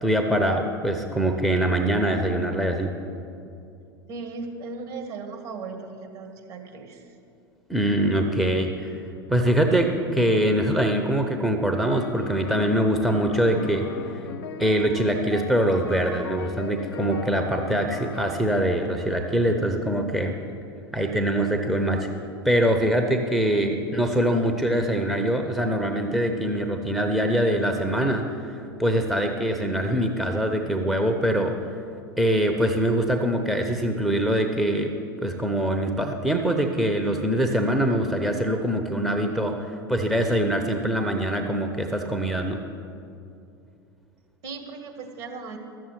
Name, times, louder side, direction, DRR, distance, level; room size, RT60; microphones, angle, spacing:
voice 1, 0.0-2.9 7.7-9.0 9.3-13.9 14.6-20.4 20.9-22.1 22.4-28.5 28.8-31.5 32.2-34.9 35.2-42.6, right 1 dB, ahead, 3 dB, 0.8 m, -23 dB
voice 2, 4.1-7.0 23.5-23.8 44.4-45.6, right 4 dB, 50° right, 3 dB, 1.9 m, -37 dB
sound 1, 11.7-19.5, left 6 dB, 65° left, 0.7 m, -38 dB
12.5 x 7.5 x 8.9 m, 2.6 s
figure-of-eight pair, 80°, 13 cm